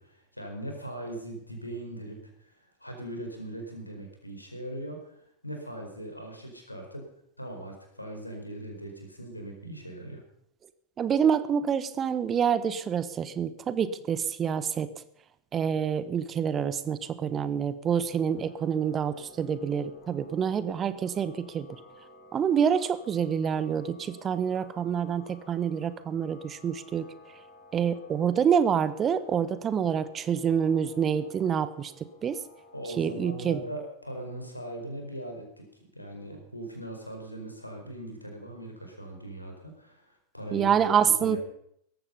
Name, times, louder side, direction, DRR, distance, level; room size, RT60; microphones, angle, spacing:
voice 1, 0.0-7.1 7.4-10.2 32.7-35.7 35.9-40.7 41.0-41.4, right 1 dB, 85° left, 3 dB, 4.7 m, -40 dB
voice 2, 11.0-14.9 15.5-21.7 22.3-27.1 27.7-31.9 32.2-32.4 33.0-33.6 40.5-41.4, right 7 dB, 25° right, 14 dB, 1.1 m, -27 dB
sound 1, 17.9-32.8, left 1 dB, 35° left, 5.4 m, -53 dB
18.0 x 14.5 x 5.6 m, 0.70 s
figure-of-eight pair, 90°, 0 cm